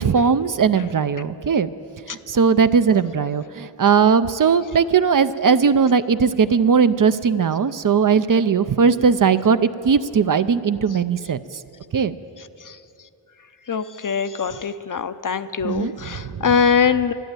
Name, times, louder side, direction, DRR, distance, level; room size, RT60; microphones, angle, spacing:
voice 1, 0.0-1.7 2.1-11.4 11.9-12.1 15.6-15.9, right 6 dB, 50° right, 12 dB, 0.5 m, -18 dB
voice 2, 13.7-17.1, left 6 dB, 45° left, 12 dB, 0.6 m, -22 dB
12.0 x 11.5 x 9.0 m, 2.8 s
cardioid pair, 40°, 44 cm